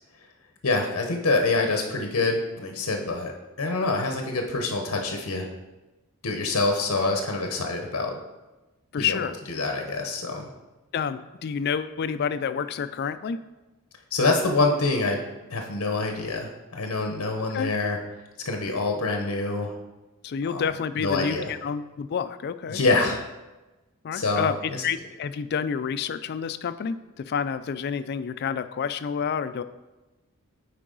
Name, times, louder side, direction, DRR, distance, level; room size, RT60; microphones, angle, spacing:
voice 1, 0.6-3.3 3.6-5.5 6.2-8.1 9.0-9.2 9.5-10.5 14.1-15.2 15.5-18.0 18.4-19.7 20.5-20.7 21.0-21.5 22.7-23.2 24.1-24.8, left 3 dB, 70° left, 3 dB, 0.8 m, -26 dB
voice 2, 8.9-9.4 10.9-13.4 17.5-17.7 20.2-23.1 24.0-29.6, left 7 dB, 50° left, 12 dB, 0.3 m, -29 dB
8.5 x 4.7 x 3.8 m, 1.1 s
head